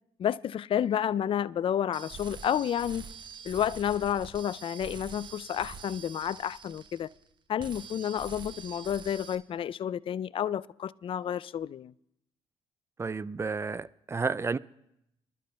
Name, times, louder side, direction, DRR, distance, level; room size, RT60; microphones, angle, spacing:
voice 1, 0.2-3.0 3.4-7.1 7.5-11.9, left 9 dB, 45° left, 0.4 m, -30 dB
sound 1, 1.9-7.3 7.6-9.4, right 6 dB, 40° right, 0.9 m, -45 dB
voice 2, 13.0-14.6, right 4 dB, 20° right, 0.4 m, -31 dB
25.0 x 12.0 x 2.3 m
supercardioid pair, 55°, 12 cm